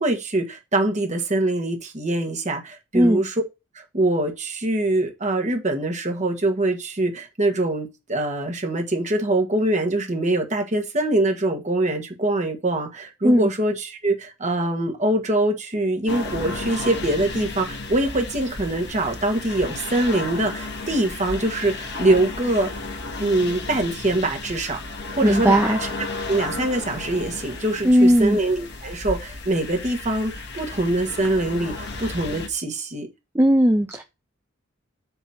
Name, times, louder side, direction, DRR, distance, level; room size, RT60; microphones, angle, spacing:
voice 1, 0.0-3.3 3.7-22.7 23.2-24.8 25.1-25.9 26.3-33.1, right 2 dB, 35° right, 1.5 m, -24 dB
sound 1, 16.1-32.5, left 3 dB, 60° left, 1.3 m, -33 dB
voice 2, 25.2-25.8 27.8-28.4 33.3-34.0, equal, 10° right, 0.6 m, -17 dB
8.0 x 3.0 x 5.7 m
head